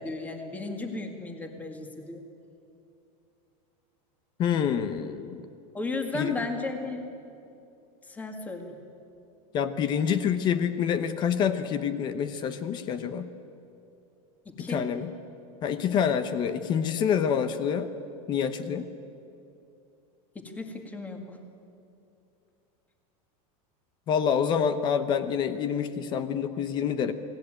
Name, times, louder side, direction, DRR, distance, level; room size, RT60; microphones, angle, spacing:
voice 1, 0.0-2.2 5.7-7.1 8.1-8.8 14.5-14.9 20.4-21.4, left 3 dB, 10° left, 4 dB, 1.9 m, -35 dB
voice 2, 4.4-5.4 6.1-6.4 9.5-13.3 14.6-15.1 15.6-17.9 18.3-18.9 24.1-27.1, left 7 dB, 25° left, 11 dB, 0.9 m, -27 dB
28.5 x 19.5 x 9.0 m, 2.7 s
supercardioid pair, 180°, 19 cm